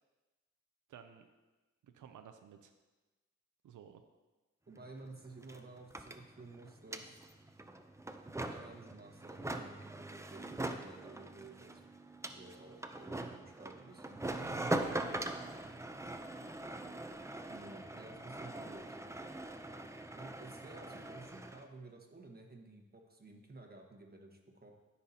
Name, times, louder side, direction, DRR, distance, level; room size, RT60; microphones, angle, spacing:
voice 1, 0.9-1.3 1.8-2.7 3.6-4.0 14.4-15.3, right 8 dB, 90° right, 7 dB, 0.5 m, -53 dB
voice 2, 4.7-7.3 8.5-11.9 12.2-14.2 17.5-19.0 20.1-24.7, right 2 dB, 30° right, 2 dB, 1.4 m, -53 dB
sound 1, 4.8-4.9 5.0-21.6, right 2 dB, 10° right, 0.5 m, -42 dB
14.0 x 5.6 x 2.8 m, 1.2 s
cardioid pair, 75°, 30 cm